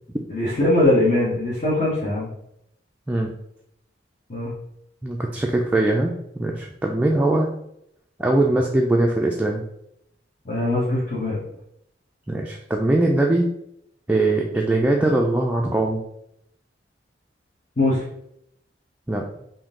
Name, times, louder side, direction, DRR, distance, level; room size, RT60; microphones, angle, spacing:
voice 1, 0.3-2.3 4.3-4.5 10.4-11.4 17.8-18.0, left 1 dB, 45° left, -7 dB, 1.0 m, -21 dB
voice 2, 5.0-7.5 8.2-9.6 12.3-13.5 14.1-16.0 19.1-19.2, right 2 dB, 10° right, -1 dB, 0.3 m, -21 dB
3.7 x 2.6 x 3.6 m, 0.77 s
head